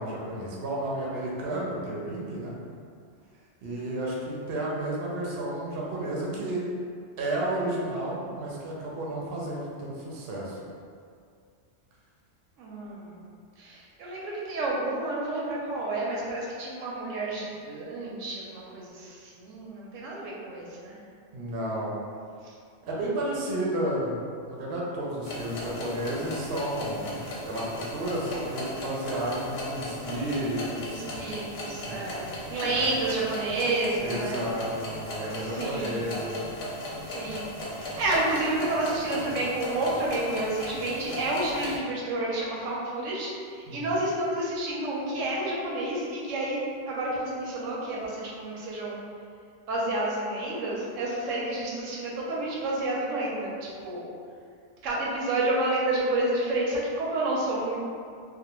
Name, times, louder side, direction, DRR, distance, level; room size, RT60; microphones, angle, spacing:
voice 1, 0.0-2.6 3.6-6.6 7.2-10.6 21.3-22.0 22.8-24.2 24.5-31.0 31.8-32.0 32.6-32.8 34.0-36.4 43.7-43.9, right 1 dB, 60° right, -4 dB, 0.7 m, -32 dB
voice 2, 12.6-13.3 13.6-21.0 22.4-22.5 30.8-34.4 35.4-36.1 37.1-46.6 46.8-49.0 49.7-53.6 53.8-54.1 54.8-57.8, right 2 dB, 85° right, -4 dB, 0.9 m, -30 dB
sound 1, 25.2-41.8, left 1 dB, 65° left, 0.7 m, -37 dB
2.3 x 2.0 x 2.9 m, 2.2 s
omnidirectional pair, 1.3 m